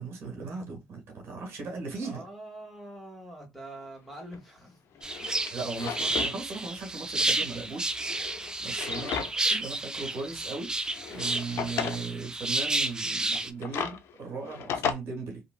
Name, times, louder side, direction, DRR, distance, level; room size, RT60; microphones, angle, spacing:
voice 1, 0.0-2.2 5.5-10.7 11.1-15.4, right 4 dB, 70° right, 1.7 m, -38 dB
voice 2, 2.0-5.3 8.9-9.2, right 1 dB, ahead, 1.9 m, -45 dB
Drawer open or close, 4.3-4.4 4.9-6.4 6.7-6.8 7.9-9.6 10.0-10.1 10.9-12.0 13.2-14.9, left 8 dB, 70° left, 0.6 m, -35 dB
sound 1, 5.0-13.5, right 2 dB, 15° right, 0.5 m, -31 dB
3.0 x 2.9 x 2.3 m
cardioid pair, 85°, 4 cm